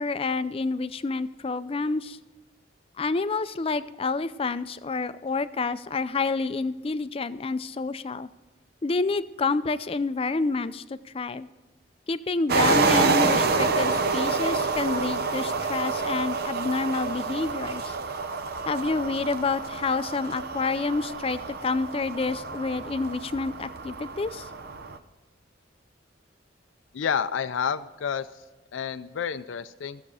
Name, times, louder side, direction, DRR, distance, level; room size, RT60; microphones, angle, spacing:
voice 1, 0.0-2.2 3.0-8.3 8.8-11.5 12.1-17.9 18.7-24.5, left 3 dB, 30° left, 14 dB, 0.4 m, -28 dB
sound 1, 12.5-25.0, right 4 dB, 55° right, 0.8 m, -28 dB
voice 2, 26.9-28.4 28.7-30.0, left 7 dB, 90° left, 14 dB, 0.4 m, -29 dB
15.5 x 7.2 x 4.9 m, 1.2 s
head